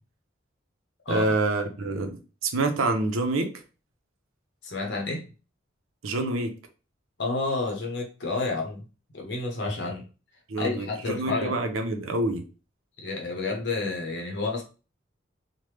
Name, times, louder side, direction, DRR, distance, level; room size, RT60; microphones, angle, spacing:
voice 1, 1.1-3.5 6.0-6.5 10.5-12.4, right 2 dB, 90° right, 5 dB, 0.6 m, -27 dB
voice 2, 4.6-5.2 7.2-8.9 9.1-10.0 10.6-11.6 13.0-14.6, left 3 dB, 60° left, 0 dB, 0.7 m, -30 dB
3.1 x 2.1 x 3.2 m, 0.34 s
head